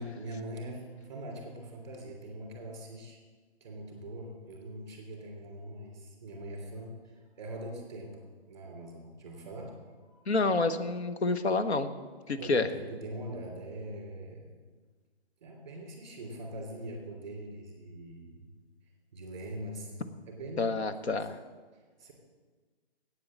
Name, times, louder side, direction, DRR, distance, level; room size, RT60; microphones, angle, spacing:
voice 1, 0.0-3.2 3.6-10.2 12.3-14.6 15.4-18.5 19.1-19.9 20.3-20.7 21.7-22.1, right 1 dB, 25° right, 0 dB, 3.0 m, -42 dB
voice 2, 10.3-11.9 12.3-12.7 20.6-21.4, left 3 dB, 85° left, 10 dB, 1.2 m, -28 dB
9.2 x 8.7 x 7.4 m, 1.4 s
hypercardioid pair, 180°, 32 cm